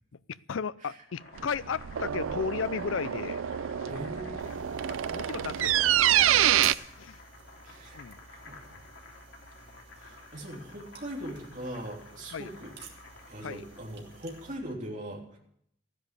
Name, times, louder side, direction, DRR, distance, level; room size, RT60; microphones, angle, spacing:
voice 1, 0.3-3.4 3.8-4.0 4.9-6.4 7.0-7.2 7.9-8.2 12.3-12.5 13.4-13.6, left 6 dB, 85° left, 18 dB, 0.5 m, -35 dB
Boiling, 1.0-14.8, left 3 dB, 65° left, 3.0 m, -51 dB
sound 1, 1.4-6.7, right 11 dB, 90° right, 0.4 m, -27 dB
voice 2, 3.9-4.8 7.6-8.7 10.0-12.7 13.3-15.4, right 1 dB, 40° right, -1 dB, 3.3 m, -41 dB
sound 2, 4.4-14.6, right 6 dB, 60° right, 2.7 m, -50 dB
14.0 x 10.5 x 6.7 m, 0.71 s
head